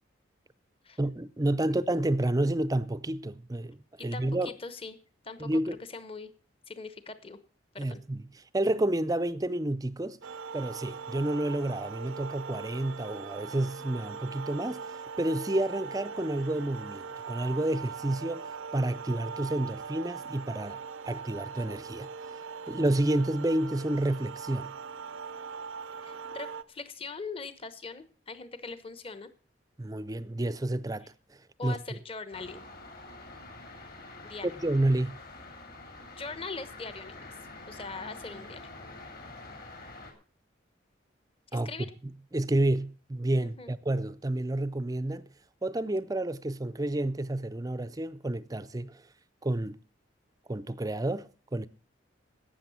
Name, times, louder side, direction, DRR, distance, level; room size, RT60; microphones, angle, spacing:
voice 1, 1.0-3.8 4.0-4.5 5.4-5.8 7.8-8.2 8.5-10.2 10.5-22.1 22.7-24.8 29.8-31.1 31.6-31.8 34.4-35.2 41.5-41.9 42.3-45.3 45.6-49.0 49.4-49.8 50.5-51.7, right 1 dB, 20° right, 0.5 m, -30 dB
voice 2, 4.0-5.0 5.2-5.6 5.9-6.3 6.7-7.4 7.7-8.0 26.0-29.3 31.6-32.6 34.2-34.5 36.1-37.3 37.7-38.6 41.5-41.9 43.4-43.7, left 4 dB, 30° left, 1.0 m, -41 dB
sound 1, 10.2-26.6, right 5 dB, 85° right, 0.6 m, -41 dB
sound 2, 32.3-40.1, left 2 dB, 50° left, 2.8 m, -46 dB
12.0 x 8.6 x 7.0 m
head